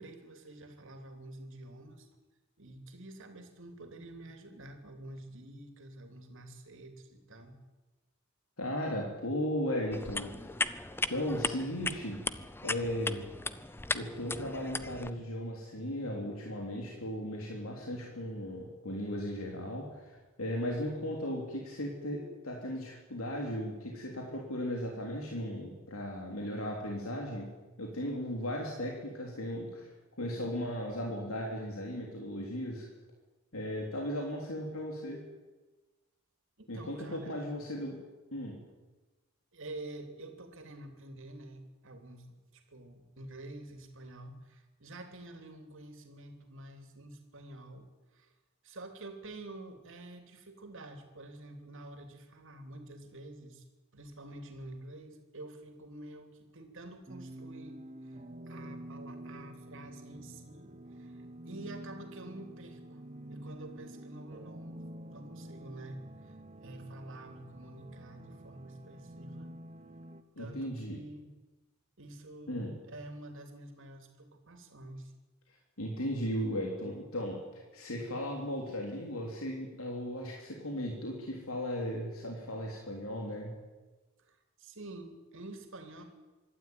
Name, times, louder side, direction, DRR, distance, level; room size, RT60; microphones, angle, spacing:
voice 1, 0.0-2.1 2.6-7.6 36.6-37.4 39.5-42.3 42.5-47.9 48.1-48.3 48.6-53.6 53.9-57.8 58.0-58.2 58.5-63.0 63.3-69.5 70.4-71.3 72.0-75.1 84.2-86.0, right 1 dB, 65° right, 6 dB, 3.1 m, -48 dB
voice 2, 8.6-10.6 11.1-12.2 12.6-13.3 13.9-27.5 27.8-29.9 30.2-32.9 33.5-35.2 36.7-38.0 38.3-38.6 70.4-71.0 72.5-72.7 75.8-83.6, equal, 85° left, -1 dB, 3.5 m, -36 dB
sound 1, 9.9-15.1, left 3 dB, 10° left, 0.7 m, -37 dB
sound 2, 57.1-70.2, right 1 dB, 35° right, 1.3 m, -48 dB
25.0 x 12.5 x 9.4 m, 1.2 s
head